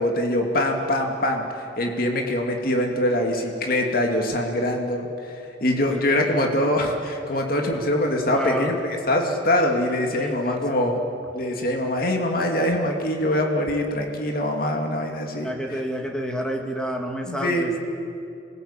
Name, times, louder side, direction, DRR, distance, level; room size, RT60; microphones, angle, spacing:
voice 1, 0.0-8.8 9.1-11.0 11.3-15.8 17.3-17.7, left 1 dB, 50° left, 2 dB, 2.6 m, -24 dB
voice 2, 8.3-8.8 10.2-10.7 15.4-17.8, equal, 5° left, 1 dB, 2.2 m, -29 dB
27.0 x 20.5 x 8.9 m, 2.7 s
head